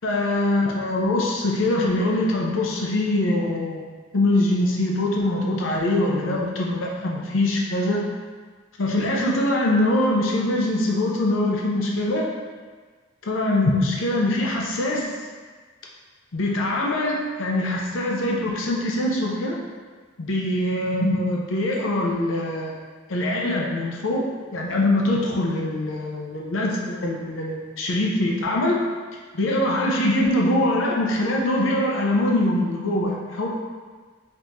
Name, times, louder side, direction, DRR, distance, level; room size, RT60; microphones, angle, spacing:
voice 1, 0.0-3.8 4.1-8.0 8.8-12.3 13.3-15.1 16.3-19.6 20.2-22.7 23.1-28.8 29.3-33.5, left 1 dB, 85° left, -2 dB, 0.6 m, -23 dB
5.3 x 2.9 x 2.7 m, 1.5 s
head